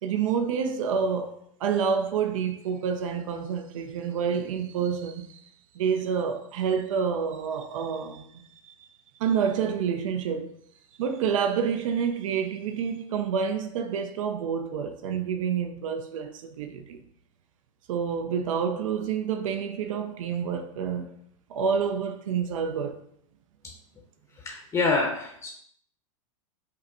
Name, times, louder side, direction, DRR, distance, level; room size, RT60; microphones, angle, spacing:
voice 1, 0.0-5.4 5.7-8.9 9.2-10.5 11.0-17.0 17.9-21.1 21.5-23.0, right 7 dB, 75° right, 0.5 m, -28 dB
voice 2, 24.4-25.5, left 3 dB, 20° left, 0.7 m, -26 dB
5.5 x 2.2 x 2.5 m
hypercardioid pair, 105°, 17 cm